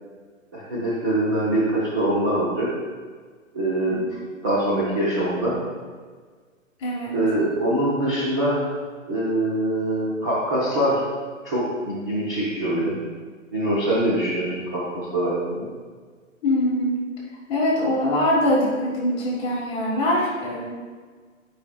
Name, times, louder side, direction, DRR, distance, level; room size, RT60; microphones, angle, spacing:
voice 1, 0.5-2.7 3.5-4.0 4.4-5.6 7.1-8.7 9.1-11.0 11.4-12.9 13.5-15.7, right 1 dB, 15° right, -9 dB, 0.5 m, -23 dB
voice 2, 6.8-7.1 16.4-16.9 17.5-20.7, left 1 dB, 15° left, -6 dB, 1.4 m, -23 dB
9.5 x 4.9 x 2.3 m, 1.5 s
hypercardioid pair, 155°, 40 cm